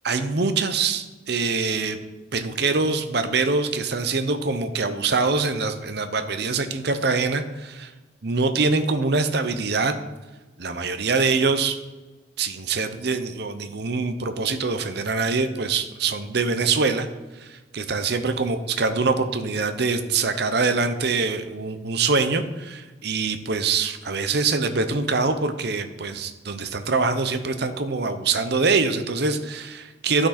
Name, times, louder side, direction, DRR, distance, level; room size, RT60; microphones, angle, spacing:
voice 1, 0.0-2.0 2.3-7.9 8.2-9.9 10.6-11.8 12.4-17.1 17.4-30.3, right 4 dB, 55° right, 8 dB, 0.7 m, -24 dB
12.5 x 6.2 x 4.2 m, 1.2 s
head